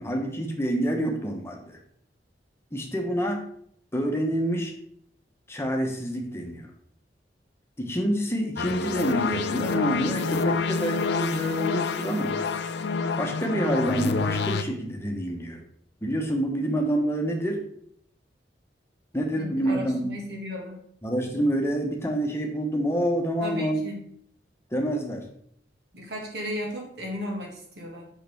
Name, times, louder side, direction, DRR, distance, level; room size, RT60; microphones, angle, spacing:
voice 1, 0.0-1.8 2.7-3.4 3.9-4.7 5.5-6.7 7.8-12.4 13.2-15.6 16.0-17.6 19.1-20.1 21.0-23.9 24.7-25.2, equal, 15° left, 2 dB, 1.0 m, -27 dB
sound 1, 8.6-14.6, left 5 dB, 65° left, 0.5 m, -28 dB
voice 2, 19.3-20.8 23.4-24.0 25.9-28.1, equal, 65° right, -1 dB, 2.1 m, -35 dB
6.4 x 5.8 x 3.5 m, 0.67 s
head